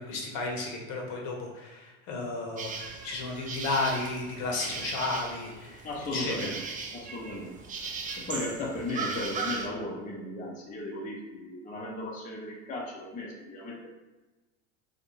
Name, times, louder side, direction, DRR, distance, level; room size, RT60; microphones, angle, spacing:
voice 1, 0.0-5.8 6.1-6.5, left 3 dB, 65° left, 0 dB, 1.0 m, -33 dB
sound 1, 2.6-9.7, right 4 dB, 25° right, 0.4 m, -38 dB
voice 2, 5.8-6.5 6.9-7.5 8.2-13.9, left 1 dB, 20° left, -2 dB, 0.6 m, -36 dB
3.2 x 2.7 x 2.9 m, 1.2 s
hypercardioid pair, 100°, 36 cm